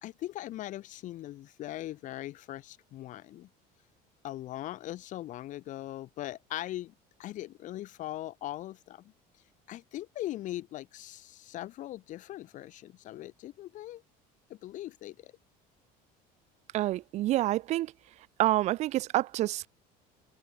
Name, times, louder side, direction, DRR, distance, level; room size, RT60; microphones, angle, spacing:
voice 1, 0.0-3.5 4.2-6.9 7.2-9.1 9.7-14.0 14.5-15.3, left 14 dB, 45° left, 4.5 m, -40 dB
voice 2, 16.7-17.9 18.4-19.7, right 15 dB, 40° right, 0.5 m, -27 dB
cardioid pair, 175°, 18 cm